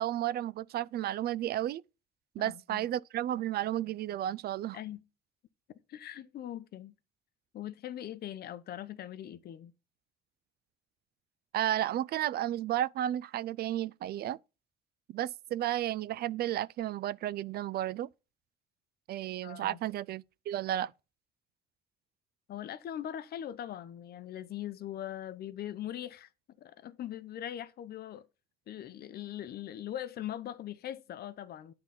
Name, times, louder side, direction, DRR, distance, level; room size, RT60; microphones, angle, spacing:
voice 1, 0.0-1.8 2.4-4.8 11.5-14.4 15.1-18.1 19.1-20.9, right 12 dB, 60° right, 0.4 m, -33 dB
voice 2, 2.4-2.9 4.7-5.0 5.9-6.9 7.5-9.7 19.4-19.8 22.5-26.3 26.6-28.2 28.7-31.7, left 11 dB, 60° left, 0.8 m, -41 dB
10.5 x 3.9 x 5.8 m
cardioid pair, 150°, 18 cm